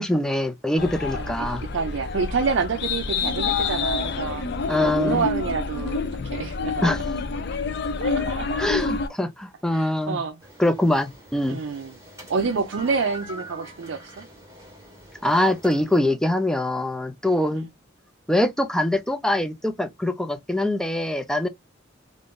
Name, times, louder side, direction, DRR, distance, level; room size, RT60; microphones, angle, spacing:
voice 1, 0.0-1.6 4.7-5.2 6.8-7.0 8.6-10.2 10.6-11.6 15.2-17.7 18.3-21.5, left 1 dB, 5° left, 0.4 m, -23 dB
sound 1, 0.8-9.1, left 4 dB, 60° left, 0.5 m, -28 dB
voice 2, 1.1-7.0 8.0-8.6 9.7-10.4 11.4-12.0 12.3-14.3, right 5 dB, 80° right, 0.5 m, -28 dB
sound 2, 10.4-16.0, right 1 dB, 15° right, 1.8 m, -44 dB
3.6 x 2.6 x 2.5 m
head